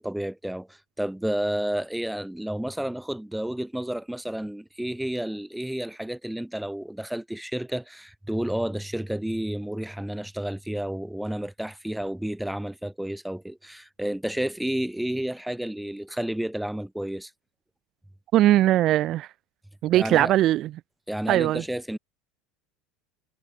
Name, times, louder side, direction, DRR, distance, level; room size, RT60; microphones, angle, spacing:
voice 1, 0.0-17.3 19.9-20.3 21.1-22.0, right 1 dB, 5° right, 0.9 m, -31 dB
voice 2, 18.3-19.3 19.8-20.7 21.3-21.6, right 14 dB, 45° right, 0.3 m, -20 dB
supercardioid pair, 130°, 0 cm